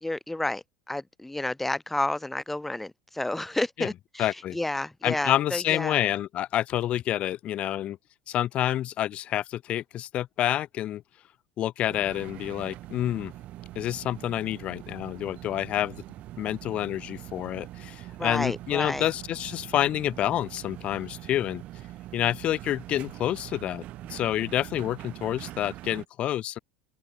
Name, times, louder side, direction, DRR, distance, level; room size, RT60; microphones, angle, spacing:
voice 1, 0.0-6.0 18.2-19.1, left 1 dB, 5° left, 1.8 m, -31 dB
voice 2, 4.2-4.6 5.0-8.0 8.3-11.0 11.6-13.3 13.8-16.0 16.4-21.6 22.1-23.8 24.1-26.6, left 12 dB, 40° left, 0.5 m, -28 dB
sound 1, 11.9-26.1, right 15 dB, 50° right, 1.4 m, -43 dB
open air
supercardioid pair, 125°, 3 cm